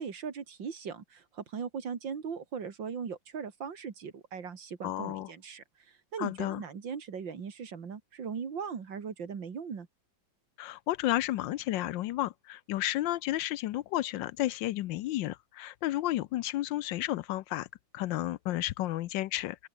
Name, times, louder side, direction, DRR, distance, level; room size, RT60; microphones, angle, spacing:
voice 1, 0.0-9.9, right 6 dB, 75° right, 2.9 m, -39 dB
voice 2, 4.8-5.3 6.2-6.6 10.6-17.7 17.9-19.7, left 15 dB, 75° left, 1.3 m, -32 dB
open air
omnidirectional pair, 2.1 m